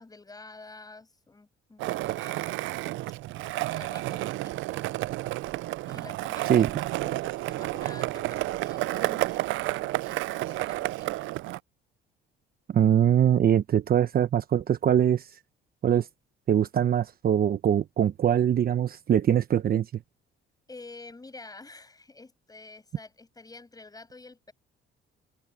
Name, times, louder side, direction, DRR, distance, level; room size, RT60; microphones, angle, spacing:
voice 1, 0.0-2.6 3.5-4.8 5.8-11.3 20.7-24.5, left 3 dB, 20° left, 7.6 m, -49 dB
Skateboard, 1.8-11.6, right 18 dB, 70° right, 0.4 m, -31 dB
voice 2, 12.7-15.3 15.8-16.1 16.5-19.9, right 9 dB, 45° right, 1.0 m, -22 dB
open air
cardioid pair, 95°, 21 cm